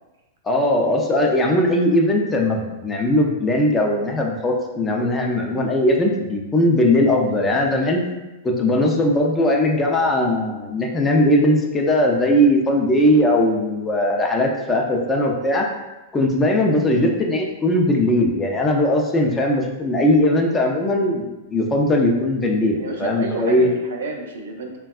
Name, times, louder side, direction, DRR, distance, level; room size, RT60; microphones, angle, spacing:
voice 1, 0.4-8.0 8.4-15.7 16.1-23.7, left 1 dB, 20° left, 1 dB, 0.5 m, -19 dB
voice 2, 22.7-24.8, right 3 dB, 75° right, 1 dB, 0.5 m, -31 dB
3.4 x 2.2 x 2.4 m, 1.0 s
hypercardioid pair, 105°, 0 cm